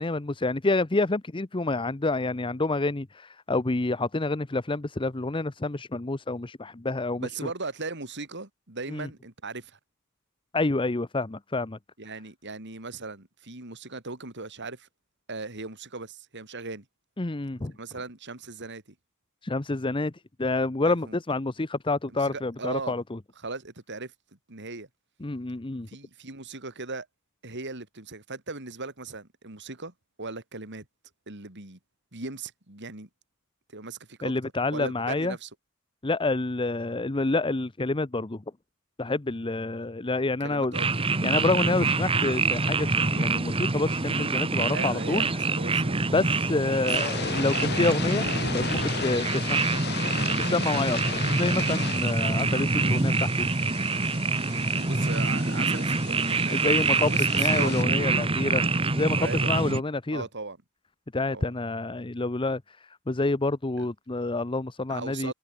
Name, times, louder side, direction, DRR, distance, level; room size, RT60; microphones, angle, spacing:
voice 1, 0.0-7.3 8.9-9.1 10.5-11.8 17.2-17.7 19.4-20.1 20.4-23.2 25.2-25.9 34.2-35.4 36.0-38.4 39.0-40.8 41.2-45.3 46.0-49.6 50.4-53.5 56.5-60.2 61.1-65.3, left 2 dB, 25° left, 0.8 m, -28 dB
voice 2, 7.2-9.8 12.0-14.9 15.3-16.9 17.8-18.8 20.8-21.2 22.2-23.0 23.4-24.1 24.5-24.9 25.9-27.1 27.4-30.9 31.3-31.8 32.1-33.1 33.7-34.3 34.7-35.5 40.4-40.9 44.7-46.0 54.7-56.7 57.0-58.7 59.2-59.6 60.1-60.6 61.3-61.5 63.8-63.9 64.9-65.3, right 3 dB, 55° right, 4.2 m, -38 dB
sound 1, 40.7-59.8, right 3 dB, 25° right, 1.3 m, -26 dB
sound 2, 46.7-57.8, left 6 dB, 50° left, 3.1 m, -36 dB
head